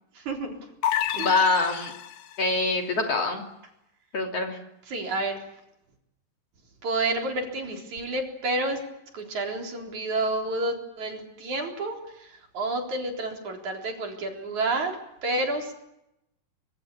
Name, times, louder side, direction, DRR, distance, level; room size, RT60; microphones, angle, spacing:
voice 1, 0.1-0.6 1.1-1.4 4.9-5.4 6.8-8.8 9.1-15.0 15.2-15.7, right 2 dB, 55° right, 3 dB, 5.2 m, -30 dB
sound 1, 0.8-2.5, left 11 dB, 75° left, 2.9 m, -29 dB
voice 2, 1.1-1.9 2.4-3.4 4.1-4.6, left 3 dB, 45° left, 3 dB, 3.9 m, -24 dB
25.0 x 24.0 x 8.6 m, 0.84 s
omnidirectional pair, 4.2 m